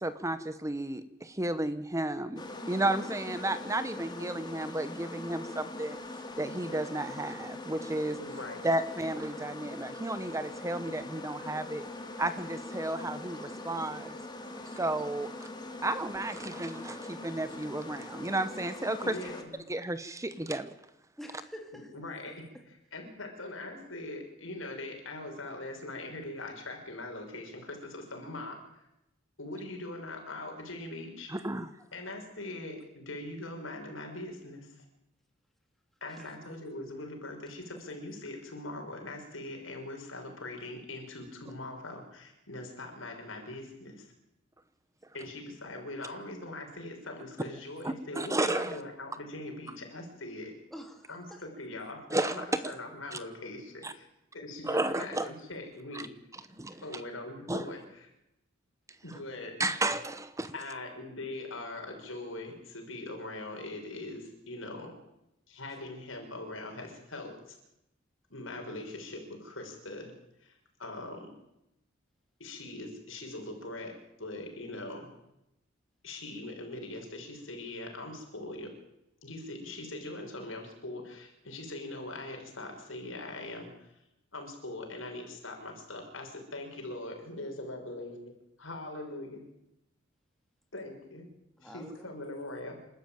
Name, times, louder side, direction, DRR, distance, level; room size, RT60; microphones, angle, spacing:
voice 1, 0.0-2.4 2.7-6.0 6.4-8.2 8.6-11.8 12.2-14.2 14.8-15.3 15.8-19.2 19.7-20.7 31.3-31.7 47.8-48.8 52.1-52.4 53.1-53.2 53.8-53.9 54.6-55.3 55.9-56.0 56.6-57.0 57.5-57.6 59.6-60.5, right 2 dB, 15° right, 12 dB, 1.0 m, -32 dB
sound 1, 2.4-19.4, left 2 dB, 20° left, 2.6 m, -42 dB
voice 2, 8.2-8.6 19.0-19.6 21.9-28.9 29.4-31.3 31.9-34.8 36.0-44.1 45.1-50.5 51.1-54.1 54.3-56.1 56.8-58.1 59.0-59.6 60.5-64.9 65.5-67.6 68.3-70.1 70.4-71.3 72.4-73.9 74.2-75.1 76.0-78.7 79.2-83.9 84.3-88.2 88.6-89.4 90.7-91.3 91.6-92.8, left 2 dB, 80° left, 3 dB, 6.2 m, -41 dB
voice 3, 21.2-21.9 36.2-36.3 50.7-51.4 56.7-56.8 91.6-92.3, equal, ahead, 3 dB, 2.8 m, -47 dB
28.5 x 13.0 x 9.1 m, 0.89 s
head